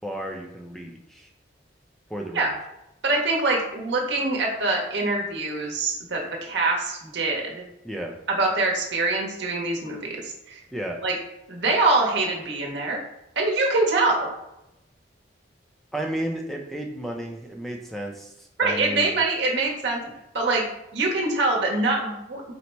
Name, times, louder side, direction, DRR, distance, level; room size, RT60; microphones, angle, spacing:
voice 1, 0.0-1.3 2.1-2.5 7.8-8.2 10.7-11.0 15.9-19.2, right 1 dB, ahead, 1 dB, 0.4 m, -33 dB
voice 2, 3.0-7.6 8.4-10.6 11.0-11.1 11.5-13.0 13.4-14.3 18.6-20.0 20.3-20.6 20.9-22.5, right 2 dB, 65° right, -1 dB, 0.9 m, -24 dB
4.0 x 2.0 x 4.5 m, 0.88 s
head